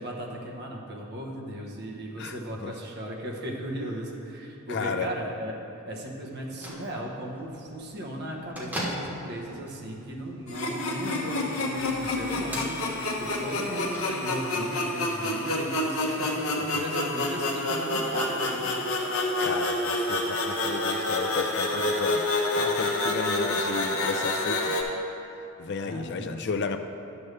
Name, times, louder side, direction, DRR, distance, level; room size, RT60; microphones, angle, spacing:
voice 1, 0.0-18.7 25.8-26.5, right 1 dB, 50° right, -1 dB, 1.1 m, -36 dB
voice 2, 4.7-5.1 13.7-13.8 16.2-16.3 19.4-22.2 22.6-25.0 25.6-26.8, left 4 dB, 50° left, 8 dB, 0.4 m, -33 dB
Bell / Microwave oven, 6.3-14.6, equal, 5° right, 1.0 m, -41 dB
sound 1, 10.5-24.8, left 2 dB, 65° left, 1.0 m, -28 dB
10.5 x 7.0 x 3.3 m, 2.7 s
head